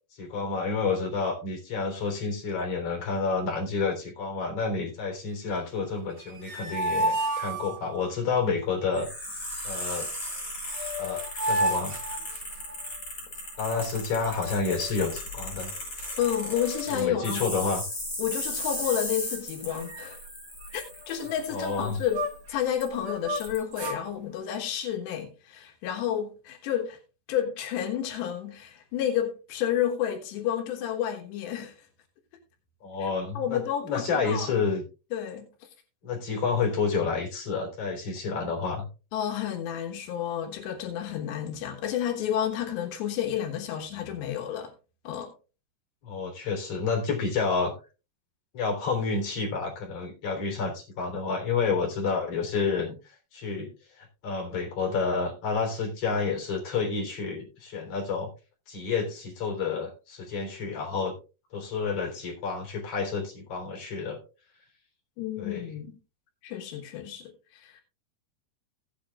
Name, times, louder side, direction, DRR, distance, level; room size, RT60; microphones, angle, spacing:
voice 1, 0.1-9.1 9.6-10.1 11.0-12.0 13.6-15.7 16.9-17.8 21.5-22.0 32.8-34.8 36.0-38.9 46.0-47.7 48.5-58.3 58.7-61.1 61.5-64.2 65.4-65.7, left 4 dB, 40° left, 4.6 m, -29 dB
sound 1, 6.1-8.1 10.3-10.4 10.7-12.9 14.2-15.1 15.6-15.7 16.0-17.1 17.4-17.7 18.3-18.9 19.2-19.4 19.7-22.6 23.0-24.0, right 1 dB, 85° right, 1.1 m, -33 dB
sound 2, 8.9-22.3 22.8-22.9 23.3-23.6, left 1 dB, 20° left, 7.8 m, -36 dB
voice 2, 16.2-17.5 18.2-20.2 20.7-22.2 22.5-27.0 27.3-31.8 33.0-33.1 33.4-34.5 35.1-35.5 39.1-44.7 45.1-45.3 65.2-66.0 66.4-67.8, left 10 dB, 85° left, 3.5 m, -30 dB
17.0 x 8.4 x 2.4 m
omnidirectional pair, 4.8 m